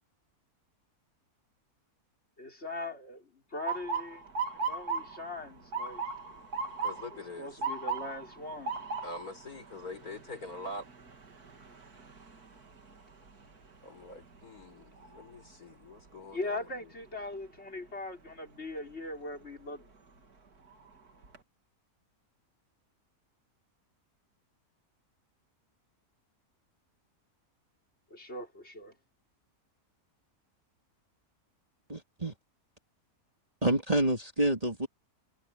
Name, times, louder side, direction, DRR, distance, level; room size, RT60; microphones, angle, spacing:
voice 1, 2.4-4.3 4.5-6.0 7.4-8.8 16.3-19.9 28.1-28.9, left 2 dB, 45° left, 4.8 m, -40 dB
Motor vehicle (road) / Siren, 3.7-15.6 16.0-16.5 17.2-17.5 19.4-19.7 20.2-20.3 20.7-21.4, right 5 dB, 85° right, 3.0 m, -39 dB
voice 2, 6.8-7.6 9.0-10.9 13.8-16.6, left 2 dB, 70° left, 5.0 m, -44 dB
voice 3, 31.9-32.3 33.6-34.9, right 1 dB, 25° right, 3.0 m, -28 dB
omnidirectional pair, 1.6 m